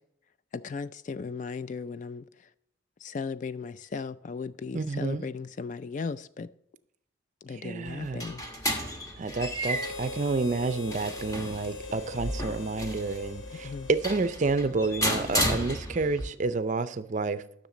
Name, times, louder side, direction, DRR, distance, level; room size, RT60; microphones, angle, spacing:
voice 1, 0.5-2.2 3.0-6.5 7.4-8.4 13.5-13.9, left 5 dB, 40° left, 0.3 m, -36 dB
voice 2, 4.7-5.2 7.5-8.3 9.2-17.4, right 3 dB, 40° right, 0.4 m, -29 dB
sound 1, 7.9-16.3, equal, 20° left, 1.1 m, -33 dB
Harmonica, 9.6-15.1, left 3 dB, 80° left, 1.2 m, -42 dB
10.5 x 6.5 x 3.8 m
head